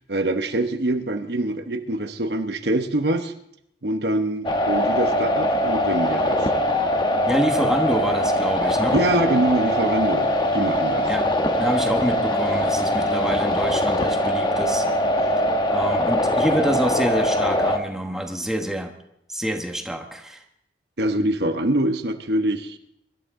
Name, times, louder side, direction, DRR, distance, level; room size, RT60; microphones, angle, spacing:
voice 1, 0.1-3.3 3.8-6.5 8.9-11.1 21.0-22.8, right 1 dB, 65° right, 7 dB, 1.0 m, -24 dB
sound 1, 4.4-17.8, left 1 dB, 25° left, 1.1 m, -22 dB
voice 2, 7.3-9.0 11.1-11.3 11.6-14.9 15.7-18.9 19.3-20.4, equal, 5° right, 3 dB, 1.2 m, -26 dB
24.0 x 12.0 x 3.7 m, 0.75 s
head